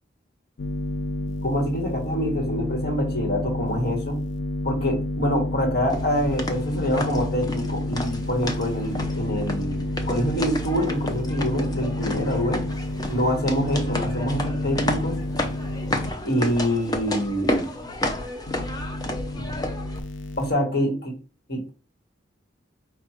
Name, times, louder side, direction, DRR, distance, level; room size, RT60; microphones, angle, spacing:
sound 1, 0.6-16.1 18.5-20.5, left 2 dB, 80° left, 0.5 m, -30 dB
voice 1, 1.4-4.2 4.6-12.6 13.1-15.2 16.2-17.7 20.4-21.1 21.5-21.7, equal, 55° left, 2 dB, 1.3 m, -26 dB
sound 2, 5.9-20.0, left 1 dB, 20° left, 0.6 m, -31 dB
4.7 x 2.4 x 4.3 m, 0.34 s
head